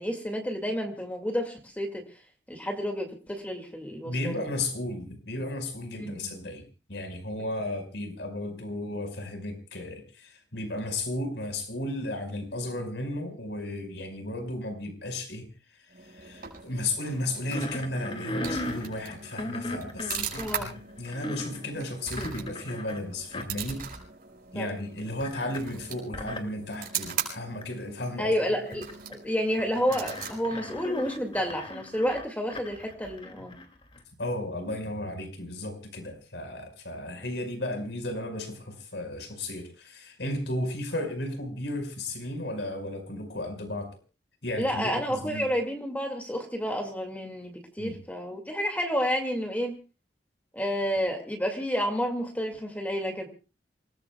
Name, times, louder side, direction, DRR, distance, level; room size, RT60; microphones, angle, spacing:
voice 1, 0.0-2.0 2.5-4.4 6.0-6.3 20.4-20.7 24.6-24.7 28.2-33.6 44.6-49.8 50.5-53.3, equal, 10° left, 3 dB, 2.2 m, -30 dB
voice 2, 4.0-6.6 6.9-15.5 16.0-23.8 24.5-28.3 34.2-44.0 44.4-45.5 47.8-48.0, left 1 dB, 85° left, 6 dB, 5.2 m, -34 dB
sound 1, 15.9-31.5, right 7 dB, 55° right, 5.6 m, -40 dB
sound 2, 17.5-21.6 22.1-23.0 23.3-23.7 24.0-24.1 25.2-25.8 26.1-26.4 27.1-27.2 27.6-27.7 28.7-29.1 29.4-34.0, left 1 dB, 30° left, 2.5 m, -37 dB
28.0 x 19.5 x 2.3 m, 0.35 s
head